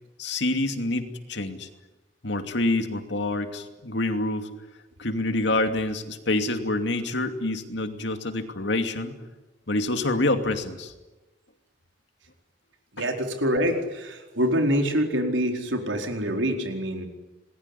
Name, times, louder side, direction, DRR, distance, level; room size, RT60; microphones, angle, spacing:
voice 1, 0.2-1.7 2.2-4.5 5.0-9.2 9.7-10.9 13.0-13.1, left 2 dB, 65° left, 7 dB, 2.7 m, -27 dB
voice 2, 12.9-17.1, equal, 85° right, 4 dB, 4.6 m, -25 dB
27.5 x 21.0 x 10.0 m, 1.1 s
head